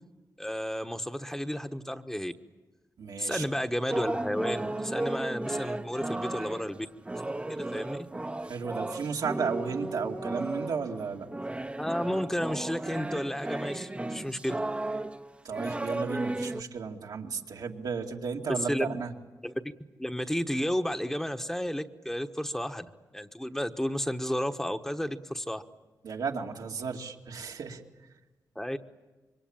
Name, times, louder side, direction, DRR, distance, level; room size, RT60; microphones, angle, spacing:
voice 1, 0.4-2.3 3.2-6.9 7.5-8.0 11.8-14.6 18.5-19.0 19.4-19.5 20.0-22.9 23.1-25.6 28.5-28.8, equal, 5° left, 6 dB, 1.2 m, -32 dB
voice 2, 3.0-3.4 8.4-11.3 15.4-19.1 26.0-27.8, right 5 dB, 85° right, 1 dB, 2.4 m, -34 dB
sound 1, 3.9-16.6, right 2 dB, 15° right, 0.8 m, -34 dB
26.5 x 23.5 x 8.9 m, 1.2 s
cardioid pair, 80°, 7 cm